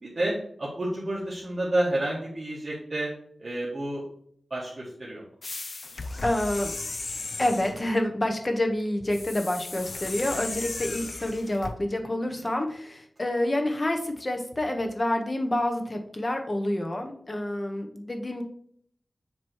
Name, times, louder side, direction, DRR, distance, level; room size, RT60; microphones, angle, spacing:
voice 1, 0.0-3.1 3.4-4.0 4.5-5.2 12.3-12.5, right 1 dB, 45° right, -7 dB, 1.5 m, -30 dB
sound 1, 5.4-7.8 9.1-11.8, left 3 dB, 50° left, 0.5 m, -36 dB
voice 2, 6.2-6.7 7.4-18.4, left 1 dB, 30° left, 4 dB, 0.9 m, -28 dB
7.6 x 3.0 x 4.5 m, 0.63 s
wide cardioid pair, 110°, 0 cm